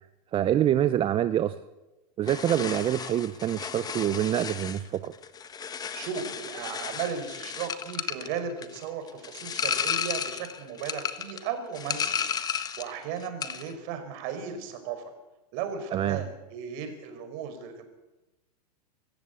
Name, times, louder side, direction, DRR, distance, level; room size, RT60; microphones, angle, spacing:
voice 1, 0.3-1.6 2.2-5.1 15.9-16.2, right 11 dB, 25° right, 13 dB, 0.7 m, -26 dB
sound 1, 2.3-13.0 13.2-13.7, left 7 dB, 20° left, 1.3 m, -33 dB
voice 2, 5.9-12.2 12.8-15.1 15.5-17.9, right 7 dB, 50° right, 8 dB, 5.1 m, -36 dB
24.5 x 14.5 x 8.3 m, 1.0 s
hypercardioid pair, 130°, 21 cm